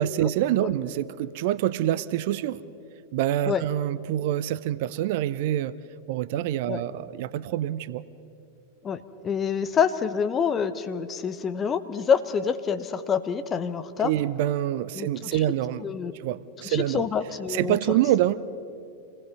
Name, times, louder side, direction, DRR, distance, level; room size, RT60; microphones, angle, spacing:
voice 1, 0.0-2.6 3.1-5.8 6.1-8.0 14.0-15.9 16.2-17.1 17.5-18.5, right 12 dB, 50° right, 18 dB, 0.5 m, -26 dB
voice 2, 8.8-14.1 14.9-15.4 15.8-16.1 16.6-17.8, left 6 dB, 25° left, 10 dB, 1.0 m, -27 dB
27.0 x 18.5 x 5.5 m, 2.6 s
figure-of-eight pair, 90°, 0 cm